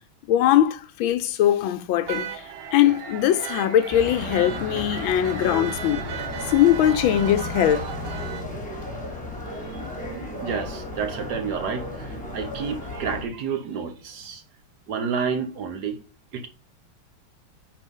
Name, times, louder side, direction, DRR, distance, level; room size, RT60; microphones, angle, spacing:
voice 1, 0.3-2.4 2.7-6.0 6.5-7.9, left 11 dB, 80° left, 1.4 m, -21 dB
sound 1, 2.1-8.4, right 8 dB, 85° right, 1.7 m, -35 dB
sound 2, 3.9-13.3, left 1 dB, 5° left, 1.7 m, -34 dB
voice 2, 10.4-14.4 14.9-16.0 16.3-16.5, right 6 dB, 60° right, 1.3 m, -30 dB
5.0 x 4.9 x 5.3 m
omnidirectional pair, 2.2 m